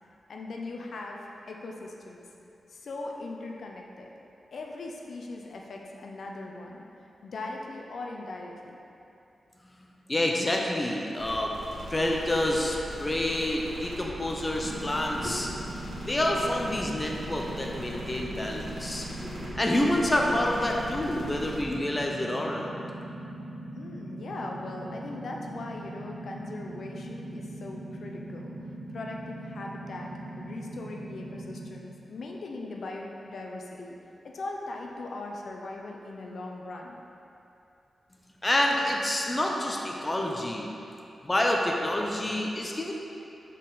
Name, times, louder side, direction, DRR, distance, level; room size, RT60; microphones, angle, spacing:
voice 1, 0.3-2.3 2.7-4.1 4.5-6.8 7.2-8.7 20.1-20.3 23.7-28.5 28.9-34.0 34.2-36.9, left 2 dB, 65° left, 0 dB, 0.5 m, -39 dB
voice 2, 10.1-11.5 11.9-15.6 16.0-22.7 38.4-40.7 41.2-42.9, left 1 dB, 20° left, 0 dB, 0.5 m, -28 dB
sound 1, 11.2-21.6, equal, 90° right, 1.5 m, -41 dB
sound 2, 14.6-31.7, right 1 dB, 25° right, 0.6 m, -40 dB
6.1 x 4.1 x 3.8 m, 2.7 s
wide cardioid pair, 105°, 0 cm